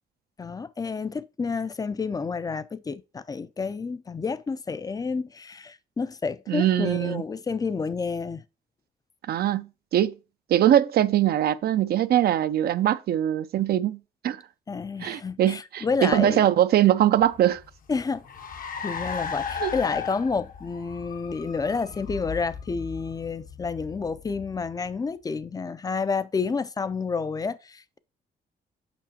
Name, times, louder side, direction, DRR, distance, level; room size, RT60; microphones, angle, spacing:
voice 1, 0.4-8.4 14.7-16.4 17.9-18.3 18.6-28.0, left 5 dB, 20° left, 0.4 m, -30 dB
voice 2, 6.5-7.2 9.3-10.1 10.5-14.0 14.2-14.4 15.0-17.6 19.6-19.7, right 11 dB, 60° right, 0.4 m, -22 dB
Car, 17.2-25.0, left 6 dB, 50° left, 0.7 m, -36 dB
7.0 x 5.4 x 2.8 m
cardioid pair, 95°, 18 cm